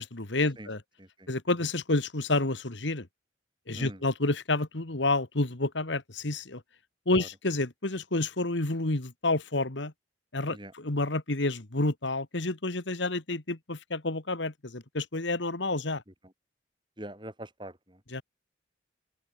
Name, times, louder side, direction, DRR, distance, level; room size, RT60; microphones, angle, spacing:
voice 1, 0.0-0.8 1.3-3.1 3.7-6.6 7.1-9.9 10.3-16.0 18.1-18.2, left 2 dB, 70° left, 1.9 m, -29 dB
voice 2, 17.0-18.0, right 1 dB, 25° right, 5.3 m, -43 dB
open air
head